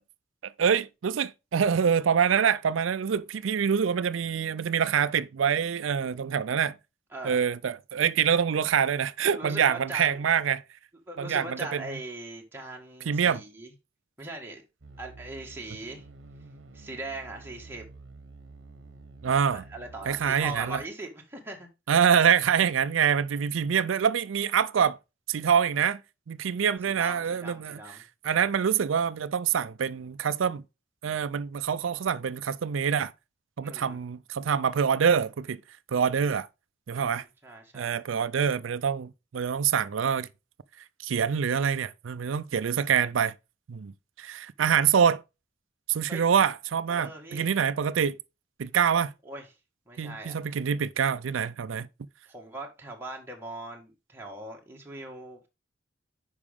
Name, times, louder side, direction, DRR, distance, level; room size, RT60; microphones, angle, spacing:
voice 1, 0.4-6.7 7.2-10.6 11.2-11.8 13.1-13.4 19.2-19.6 20.1-20.8 21.9-25.0 25.3-26.0 26.3-27.8 28.2-30.6 31.0-33.1 33.6-35.6 35.9-36.5 36.9-37.2 37.7-40.3 41.0-43.3 43.7-43.9 44.2-45.2 45.9-48.2 48.6-49.1 50.0-51.9, right 7 dB, 80° right, 0.4 m, -25 dB
voice 2, 7.1-7.5 9.2-10.2 11.1-13.7 14.2-14.6 15.0-16.1 16.7-17.9 19.5-21.7 26.8-28.1 33.6-34.0 36.9-37.9 46.1-46.2 46.9-47.5 49.2-49.5 49.9-50.6 52.3-55.5, right 2 dB, 10° right, 1.7 m, -40 dB
sound 1, 14.8-20.9, right 3 dB, 65° right, 1.0 m, -49 dB
9.8 x 5.0 x 3.5 m
head